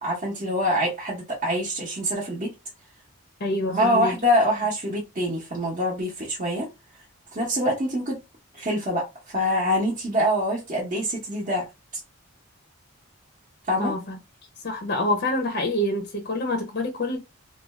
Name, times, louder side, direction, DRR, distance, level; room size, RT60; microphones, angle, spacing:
voice 1, 0.0-2.5 3.7-6.7 7.3-8.2 8.5-11.7 13.7-13.9, equal, 35° right, 0.7 m, -25 dB
voice 2, 3.4-4.2 13.8-14.2 14.6-17.2, left 1 dB, 45° left, 0.5 m, -26 dB
2.5 x 2.2 x 3.1 m
head